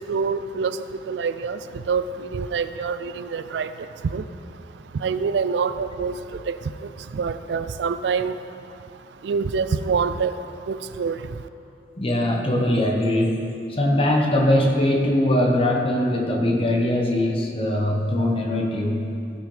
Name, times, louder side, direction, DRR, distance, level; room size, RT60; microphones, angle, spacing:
voice 1, 0.1-0.8 1.1-1.6 1.9-3.7 4.0-4.2 5.0-6.1 6.5-6.6 7.1-8.4 9.2-10.3 10.7-11.2, right 5 dB, 75° right, 12 dB, 0.4 m, -25 dB
voice 2, 12.0-19.0, left 1 dB, 35° left, 1 dB, 1.1 m, -21 dB
15.5 x 6.3 x 3.3 m, 2.6 s
head